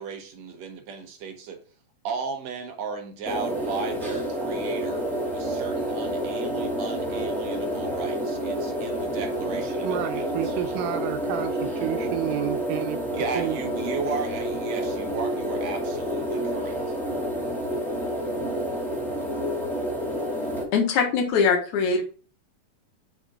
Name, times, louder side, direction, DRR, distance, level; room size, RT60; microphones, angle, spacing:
voice 1, 0.0-1.6 2.0-5.0 5.3-10.3 13.1-16.8, right 5 dB, 65° right, 1.9 m, -35 dB
sound 1, 3.3-20.6, equal, ahead, 1.1 m, -29 dB
voice 2, 9.8-13.0 13.4-13.6, right 12 dB, 90° right, 2.3 m, -30 dB
voice 3, 20.7-22.0, left 5 dB, 65° left, 2.5 m, -22 dB
6.2 x 5.0 x 3.5 m
omnidirectional pair, 3.8 m